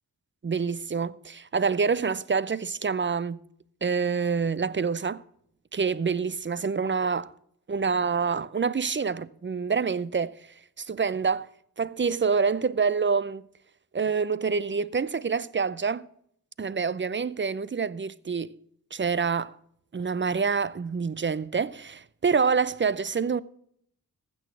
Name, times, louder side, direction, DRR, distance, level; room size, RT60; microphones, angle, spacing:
voice 1, 0.4-3.4 3.8-5.2 5.7-7.3 7.7-10.4 10.8-11.5 11.8-13.4 13.9-16.1 16.6-18.6 18.9-19.5 19.9-23.4, right 5 dB, 30° right, 0.5 m, -27 dB
15.0 x 6.2 x 6.1 m
cardioid pair, 45°, 40 cm